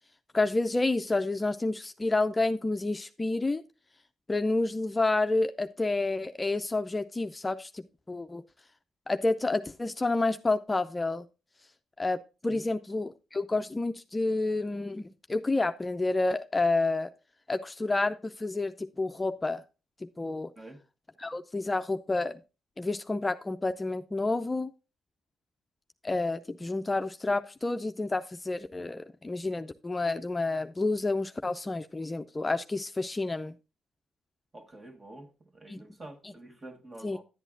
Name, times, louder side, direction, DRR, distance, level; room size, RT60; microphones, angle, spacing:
voice 1, 0.3-3.6 4.3-8.4 9.1-11.2 12.0-12.2 12.4-17.1 17.5-19.6 20.2-20.5 21.2-22.4 22.8-24.7 26.0-33.5 35.7-35.8 36.2-36.3 37.0-37.2, left 2 dB, 25° left, 0.5 m, -29 dB
voice 2, 34.5-37.2, right 1 dB, 35° right, 1.7 m, -48 dB
11.0 x 8.1 x 2.5 m
supercardioid pair, 55°, 0 cm